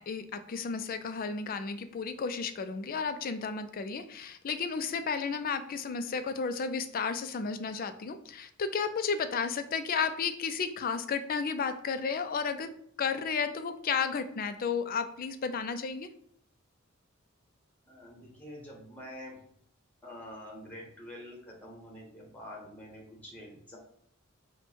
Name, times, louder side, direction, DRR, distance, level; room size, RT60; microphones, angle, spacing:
voice 1, 0.0-12.7 13.0-16.1, left 5 dB, 45° left, 10 dB, 0.4 m, -33 dB
voice 2, 17.9-19.4 20.0-23.8, left 1 dB, 10° left, -1 dB, 1.1 m, -46 dB
4.4 x 2.2 x 4.3 m, 0.67 s
head